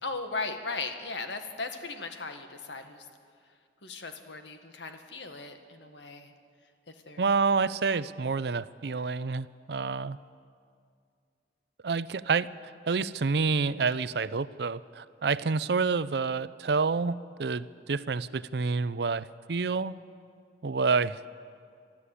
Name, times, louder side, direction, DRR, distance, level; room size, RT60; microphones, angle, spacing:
voice 1, 0.0-3.0 3.8-6.3 6.9-7.3, left 3 dB, 85° left, 6 dB, 1.7 m, -37 dB
voice 2, 7.2-10.2 11.8-12.5 12.9-19.9 20.6-21.4, right 4 dB, 65° right, 16 dB, 0.5 m, -28 dB
24.0 x 13.0 x 8.4 m, 2.2 s
head